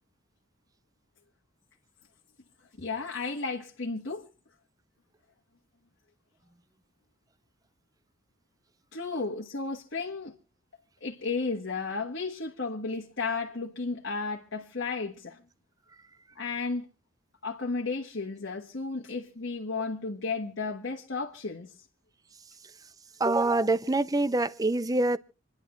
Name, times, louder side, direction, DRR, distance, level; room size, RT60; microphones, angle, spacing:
voice 1, 2.8-4.3 8.9-10.3 11.0-15.4 16.3-16.9 17.4-21.7, left 4 dB, 60° left, 1.4 m, -33 dB
voice 2, 23.2-25.2, right 2 dB, 20° right, 0.6 m, -25 dB
28.0 x 11.0 x 3.1 m
head